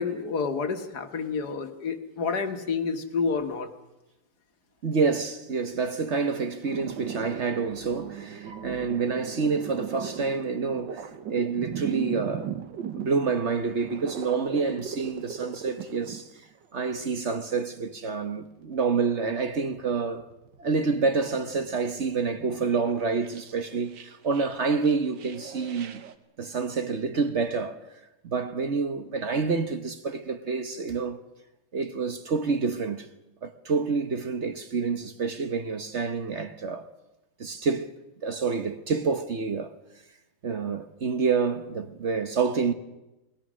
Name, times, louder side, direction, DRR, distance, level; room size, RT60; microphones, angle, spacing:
voice 1, 0.0-3.7, left 5 dB, 55° left, 1.9 m, -29 dB
voice 2, 4.8-12.5 12.9-16.3 16.7-20.2 20.6-26.0 26.4-27.8 28.2-31.2 31.7-33.1 33.4-36.8 37.4-37.9 38.2-39.7 40.4-42.7, right 4 dB, 45° right, 1.1 m, -28 dB
sound 1, 6.6-16.3 16.6-17.3 19.2-21.0 21.3-26.1, right 8 dB, 70° right, 1.8 m, -39 dB
28.5 x 20.0 x 6.3 m
omnidirectional pair, 2.1 m